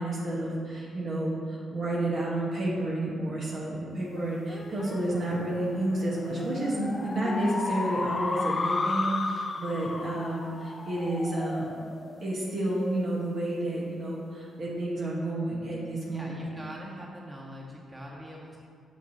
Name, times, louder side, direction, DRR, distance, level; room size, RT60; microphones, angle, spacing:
voice 1, 0.0-11.7 12.2-16.5, right 1 dB, 60° right, -5 dB, 1.6 m, -30 dB
sound 1, 4.2-13.0, left 3 dB, 40° left, 0.5 m, -34 dB
voice 2, 16.1-18.6, equal, 20° right, -4 dB, 1.7 m, -43 dB
6.9 x 6.3 x 3.1 m, 2.2 s
supercardioid pair, 50°, 0 cm